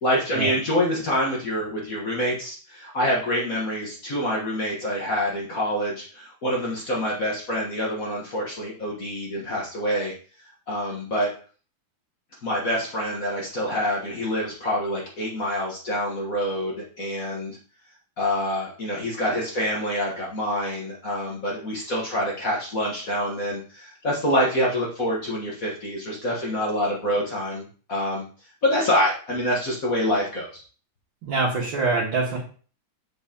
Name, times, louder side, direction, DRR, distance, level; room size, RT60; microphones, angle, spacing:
voice 1, 0.0-10.1 10.7-11.3 12.4-17.6 18.2-28.2 28.6-30.6, equal, 45° left, -3 dB, 1.6 m, -26 dB
voice 2, 31.2-32.4, right 3 dB, 70° right, -5 dB, 2.2 m, -24 dB
7.6 x 5.4 x 2.8 m, 0.40 s
omnidirectional pair, 2.2 m